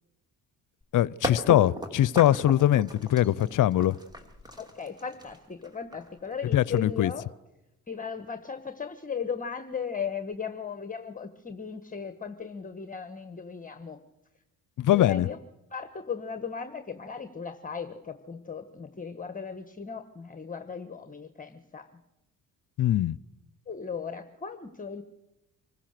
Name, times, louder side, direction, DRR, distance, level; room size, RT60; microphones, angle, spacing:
sound 1, 0.8-0.9 1.2-7.1, equal, 10° right, 2.8 m, -37 dB
voice 1, 0.9-4.0 6.5-7.1 14.8-15.3 22.8-23.2, left 13 dB, 55° left, 0.7 m, -22 dB
voice 2, 4.6-7.3 7.9-14.0 14.9-15.4 15.7-21.9 23.7-25.0, left 6 dB, 20° left, 1.3 m, -37 dB
25.5 x 15.0 x 6.7 m
cardioid pair, 85°, 37 cm